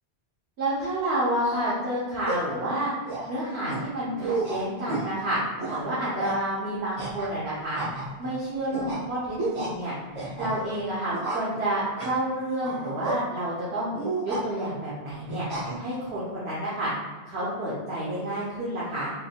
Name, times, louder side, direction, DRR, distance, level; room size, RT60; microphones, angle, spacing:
voice 1, 0.6-2.9 3.3-5.4 5.8-7.8 8.2-9.9 10.4-13.9 14.2-15.5 15.8-16.9 17.2-19.1, right 1 dB, 75° right, -8 dB, 1.2 m, -29 dB
sound 1, 1.4-1.8 2.2-2.5 3.0-3.3 3.7-3.8 4.2-5.1 5.6-5.9 6.2-6.4 7.0-7.4 7.7-8.3 8.7-9.0 9.4-9.7 10.1-10.8 11.1-11.6 12.0-12.2 12.6-13.2 13.9-14.4 15.3-15.8, right 3 dB, 35° right, 0.9 m, -31 dB
4.3 x 3.6 x 2.2 m, 1.4 s
omnidirectional pair, 1.1 m